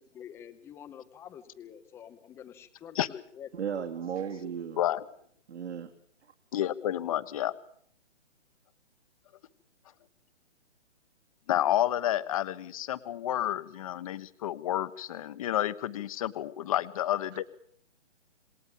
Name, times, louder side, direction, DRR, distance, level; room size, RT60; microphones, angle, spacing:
voice 1, 0.0-3.5, left 9 dB, 5° left, 11 dB, 1.0 m, -47 dB
voice 2, 3.5-4.8 5.5-5.9, right 7 dB, 65° right, 3 dB, 3.1 m, -35 dB
voice 3, 6.5-7.5 11.5-17.4, left 12 dB, 30° left, 14 dB, 1.1 m, -30 dB
27.5 x 20.0 x 7.3 m, 0.64 s
hypercardioid pair, 160°, 35 cm